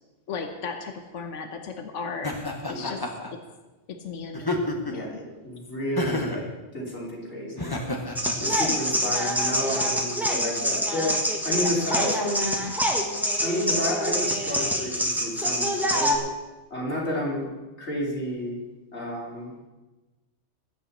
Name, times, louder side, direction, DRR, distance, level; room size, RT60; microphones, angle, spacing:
voice 1, 0.3-2.3 2.6-3.0 3.9-5.2 11.7-11.8, left 5 dB, 85° left, 5 dB, 1.4 m, -36 dB
Laughter, 2.2-3.3 4.3-5.1 6.0-6.5 7.6-8.3, left 2 dB, 20° left, 1.3 m, -30 dB
voice 2, 2.7-3.1 4.9-7.9 8.4-11.2 11.4-12.6 13.4-16.3 16.7-17.5 17.8-18.6 18.9-19.5, left 1 dB, 65° left, -5 dB, 3.6 m, -31 dB
sound 1, 8.2-16.2, equal, ahead, 1.5 m, -26 dB
21.0 x 8.7 x 4.2 m, 1.2 s
omnidirectional pair, 1.2 m